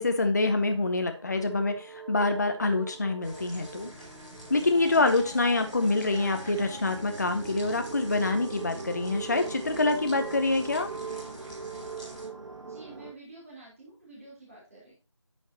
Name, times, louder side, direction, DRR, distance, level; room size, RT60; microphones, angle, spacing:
voice 1, 0.0-3.9 4.5-10.9, left 2 dB, 35° left, 7 dB, 0.8 m, -26 dB
sound 1, 0.6-13.1, right 4 dB, 75° right, 1.7 m, -41 dB
sound 2, 3.2-12.3, equal, 10° left, 3.6 m, -48 dB
voice 2, 12.6-14.9, right 2 dB, 30° right, -7 dB, 3.7 m, -49 dB
9.8 x 6.4 x 2.9 m, 0.31 s
figure-of-eight pair, 170°, 16 cm